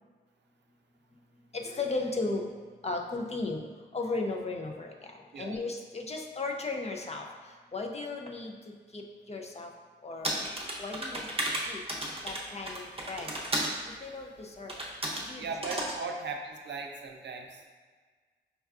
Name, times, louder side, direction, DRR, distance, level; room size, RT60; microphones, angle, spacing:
voice 1, 1.5-2.5 2.8-3.6 3.9-5.1 5.4-7.3 7.7-8.5 8.9-9.0 9.3-9.7 10.0-10.3 10.8-11.3 11.7-11.8 12.2-13.3 14.0-14.7 15.3-15.5 16.0-16.1, left 3 dB, 35° left, 2 dB, 0.5 m, -35 dB
sound 1, 10.2-13.8 14.7-15.3 15.6-16.0, right 1 dB, 30° right, 0.7 m, -33 dB
voice 2, 15.4-17.7, right 4 dB, 65° right, 2 dB, 0.5 m, -38 dB
5.3 x 2.3 x 2.4 m, 1.5 s
cardioid pair, 55°, 20 cm